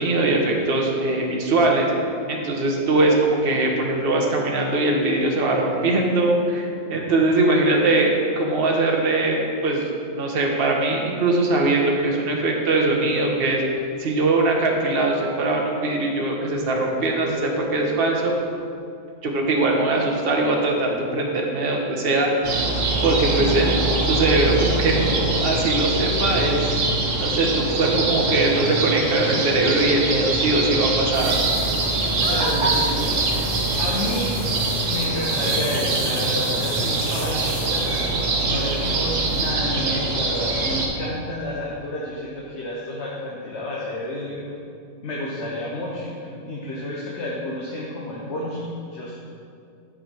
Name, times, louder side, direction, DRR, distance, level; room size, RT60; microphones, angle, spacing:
voice 1, 0.0-1.9 2.3-8.1 8.4-13.6 14.0-18.4 19.2-22.5 23.0-23.7 24.1-26.8 27.2-31.4, right 2 dB, 45° right, 0 dB, 1.2 m, -21 dB
sound 1, 22.4-40.9, right 2 dB, 70° right, 1.4 m, -23 dB
sound 2, 31.1-39.5, equal, 15° right, 2.1 m, -39 dB
voice 2, 32.3-33.3 33.8-34.3 34.8-44.4 45.0-49.2, left 1 dB, 60° left, -4 dB, 1.3 m, -30 dB
10.5 x 5.1 x 4.5 m, 2.4 s
omnidirectional pair, 1.4 m